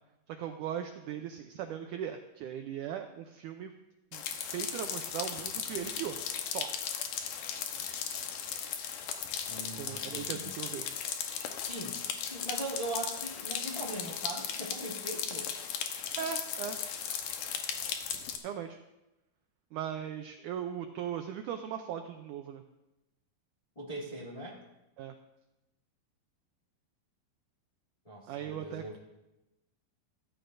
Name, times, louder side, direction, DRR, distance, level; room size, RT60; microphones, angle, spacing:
voice 1, 0.4-3.7 4.1-4.2 4.5-6.7 9.8-10.9 16.2-16.8 18.4-18.8 19.7-22.6 25.0-25.1 28.3-29.0, right 9 dB, 85° right, 6 dB, 1.8 m, -38 dB
sound 1, 4.1-18.4, left 8 dB, 70° left, 2.4 m, -37 dB
voice 2, 9.5-10.5 11.6-15.5 23.7-24.6 28.0-29.0, right 1 dB, 30° left, -4 dB, 0.7 m, -40 dB
15.0 x 14.5 x 2.6 m, 0.97 s
omnidirectional pair, 4.3 m